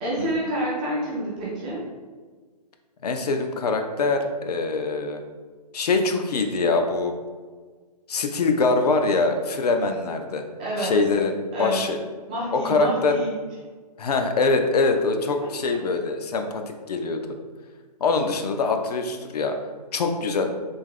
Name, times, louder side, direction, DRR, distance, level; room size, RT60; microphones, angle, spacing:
voice 1, 0.0-1.8 10.6-10.9 11.5-11.8 12.3-13.3 15.7-15.8, right 1 dB, 10° right, -6 dB, 0.3 m, -28 dB
voice 2, 3.0-5.2 5.7-7.1 8.1-10.4 10.8-12.0 12.5-13.2 14.0-17.2 18.0-19.6 19.9-20.5, left 3 dB, 70° left, 5 dB, 0.5 m, -23 dB
3.4 x 2.4 x 3.6 m, 1.5 s
hypercardioid pair, 155°, 21 cm